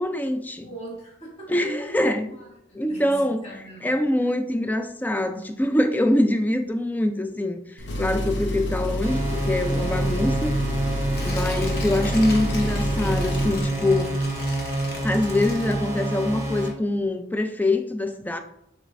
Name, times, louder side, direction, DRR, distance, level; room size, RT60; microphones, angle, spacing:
voice 1, 0.0-0.7 1.5-2.3 2.7-3.4 3.8-10.5 11.2-14.2 15.0-18.4, left 1 dB, 10° left, 0.3 m, -24 dB
voice 2, 0.6-1.7 2.3-3.9 4.2-4.3, right 1 dB, 35° left, 1.3 m, -42 dB
Engine, 7.8-13.6, equal, 85° left, 0.7 m, -28 dB
sound 1, 9.0-16.7, right 1 dB, 15° right, 0.9 m, -28 dB
Tearing, 11.1-16.2 16.6-16.7, left 2 dB, 60° left, 0.9 m, -38 dB
6.4 x 3.2 x 2.5 m
head